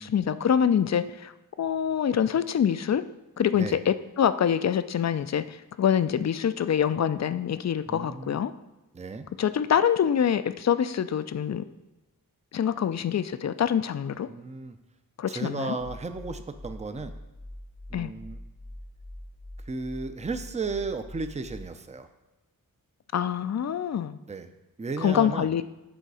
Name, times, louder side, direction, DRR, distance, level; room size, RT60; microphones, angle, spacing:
voice 1, 0.0-1.3 1.6-3.0 3.4-8.5 9.4-11.6 12.5-14.3 15.2-15.8 17.9-18.1 23.1-24.2 25.0-25.6, left 8 dB, 50° left, 13 dB, 0.4 m, -25 dB
voice 2, 7.9-8.4 8.9-9.3 14.3-14.8 15.3-17.2 17.9-18.4 19.6-22.1 24.3-24.5 24.8-25.5, right 3 dB, 20° right, 8 dB, 0.5 m, -34 dB
sound 1, 15.8-21.7, left 1 dB, 90° left, 1.7 m, -43 dB
9.2 x 3.9 x 4.8 m, 1.0 s
wide cardioid pair, 65°, 36 cm